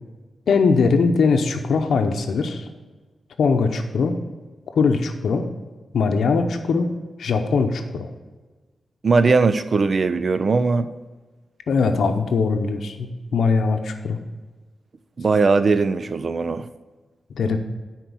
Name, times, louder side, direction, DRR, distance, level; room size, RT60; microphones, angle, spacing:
voice 1, 0.5-2.7 3.4-4.1 4.7-5.5 5.9-6.9 7.2-8.1 11.7-14.2 17.3-17.6, left 4 dB, 85° left, 0.7 m, -21 dB
voice 2, 9.0-10.9 15.2-16.7, right 4 dB, 45° right, 0.4 m, -19 dB
10.0 x 4.4 x 7.0 m
wide cardioid pair, 120°, 0 cm